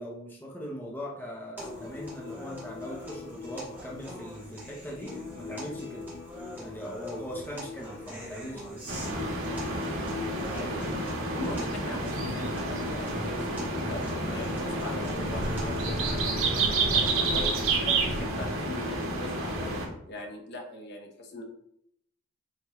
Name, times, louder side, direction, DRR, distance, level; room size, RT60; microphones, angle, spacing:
voice 1, 0.0-6.1 6.5-8.8, equal, 10° left, -3 dB, 1.1 m, -40 dB
sound 1, 1.6-17.6, left 2 dB, 10° right, 2.9 m, -40 dB
sound 2, 8.9-19.9, right 2 dB, 75° right, 1.6 m, -29 dB
voice 2, 10.5-10.8 11.3-19.7 20.1-21.4, left 1 dB, 55° left, 1 dB, 1.3 m, -40 dB
8.3 x 4.5 x 3.3 m, 0.73 s
head